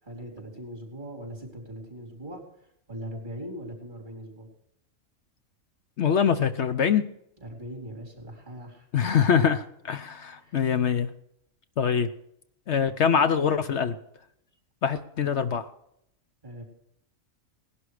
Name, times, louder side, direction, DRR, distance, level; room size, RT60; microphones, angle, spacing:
voice 1, 0.0-4.5 7.4-8.9 10.3-10.6 16.4-16.6, right 1 dB, 35° right, 0 dB, 4.4 m, -40 dB
voice 2, 6.0-7.0 8.9-11.1 11.8-12.1 12.7-14.0 14.8-15.7, left 7 dB, 65° left, 10 dB, 1.0 m, -24 dB
19.0 x 11.5 x 4.9 m, 0.74 s
omnidirectional pair, 1.4 m